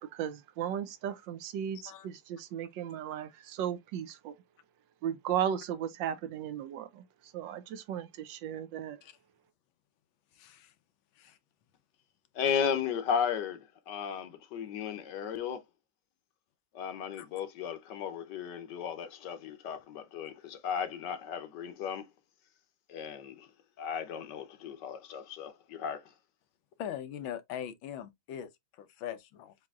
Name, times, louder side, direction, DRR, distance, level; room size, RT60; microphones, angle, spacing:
voice 1, 0.0-4.4 5.0-7.0 7.3-9.0, right 9 dB, 75° right, 1.2 m, -35 dB
voice 2, 1.7-2.1 9.0-9.2 10.3-10.7 11.1-11.4 17.2-17.3 26.8-29.5, left 10 dB, 85° left, 1.5 m, -41 dB
voice 3, 12.3-15.6 16.7-22.1 22.9-23.5 23.8-26.0, left 7 dB, 65° left, 1.3 m, -35 dB
7.4 x 2.8 x 2.3 m
omnidirectional pair, 2.1 m